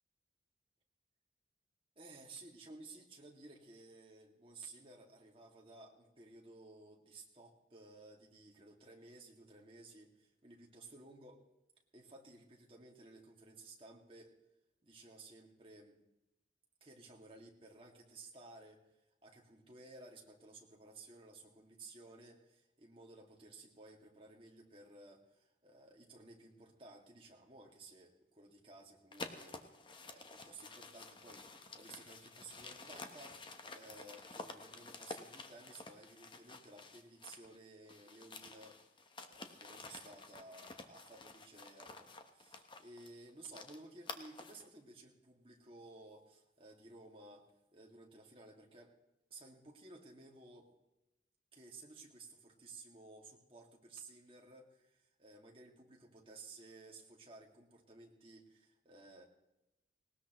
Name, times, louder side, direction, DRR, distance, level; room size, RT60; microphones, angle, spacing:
voice 1, 2.0-11.4 11.9-14.4 14.8-16.0 16.8-18.8 19.2-29.6 30.0-38.8 39.3-47.5 47.7-49.0 49.3-50.7 51.5-59.2, right 2 dB, 30° right, 0 dB, 2.1 m, -56 dB
sound 1, 29.1-37.6 37.9-44.7, left 3 dB, 25° left, 1.0 m, -51 dB
19.0 x 19.0 x 3.1 m, 0.95 s
head